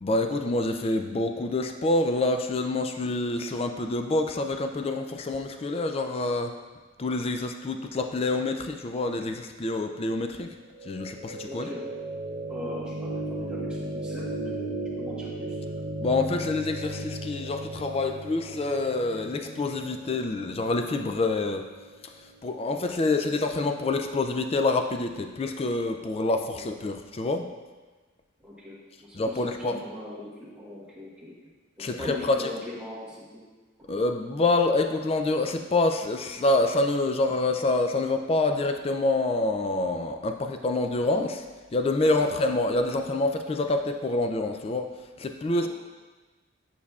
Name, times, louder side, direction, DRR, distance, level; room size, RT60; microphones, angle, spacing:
voice 1, 0.0-6.5 7.0-10.5 10.9-11.7 16.0-21.7 22.4-27.5 29.1-29.8 31.8-32.5 33.9-41.4 41.7-44.9 45.2-45.7, left 2 dB, 30° left, 6 dB, 0.3 m, -27 dB
sound 1, 10.6-22.7, right 1 dB, 90° right, 0.7 m, -36 dB
voice 2, 11.5-11.8 12.5-15.6 26.3-26.7 28.4-31.3 31.8-33.4 42.2-42.4 45.6-45.7, left 1 dB, 5° right, -7 dB, 1.2 m, -41 dB
8.4 x 5.5 x 2.4 m, 1.3 s
head